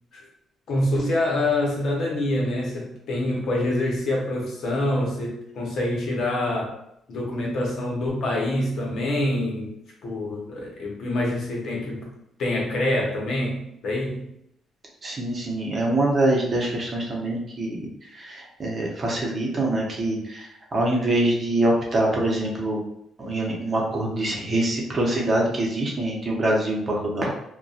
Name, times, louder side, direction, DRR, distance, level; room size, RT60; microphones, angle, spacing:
voice 1, 0.7-6.8 7.1-9.7 10.0-12.1 12.4-14.3, left 1 dB, 65° left, -2 dB, 0.8 m, -26 dB
voice 2, 15.0-22.8 23.2-27.3, right 1 dB, 40° right, -2 dB, 0.7 m, -24 dB
2.6 x 2.2 x 2.4 m, 0.76 s
cardioid pair, 90°, 0 cm